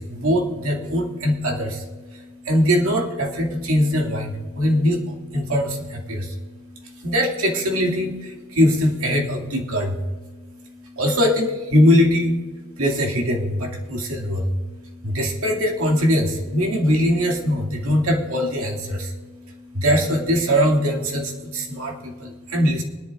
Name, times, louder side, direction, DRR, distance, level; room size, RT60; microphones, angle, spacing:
voice 1, 0.0-12.4 12.8-22.8, equal, 65° right, 0 dB, 2.3 m, -22 dB
20.5 x 11.0 x 2.5 m, 1.4 s
head